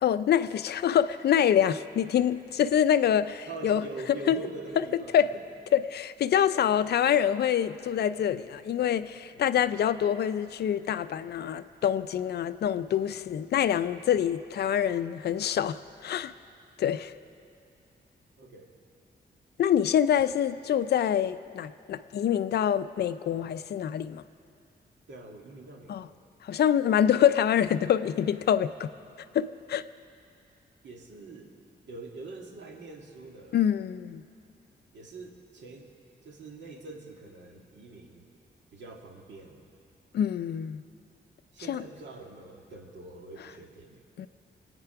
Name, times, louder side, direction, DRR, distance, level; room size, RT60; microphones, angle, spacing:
voice 1, 0.0-3.9 4.3-4.4 4.8-4.9 5.1-5.3 5.7-16.3 16.8-17.1 19.6-24.2 25.9-26.1 26.4-28.9 29.3-29.8 33.5-34.2 40.1-40.8 41.7-41.8 44.2-44.3, left 9 dB, 65° left, 0.4 m, -26 dB
voice 2, 3.4-5.5 9.3-9.6 12.7-13.2 18.4-18.7 25.1-26.2 30.8-31.5 31.9-33.6 34.9-35.9 36.2-38.3 38.7-39.6 41.5-44.0, right 3 dB, 85° right, 1.9 m, -44 dB
25.5 x 9.0 x 5.8 m
wide cardioid pair, 170°, 18 cm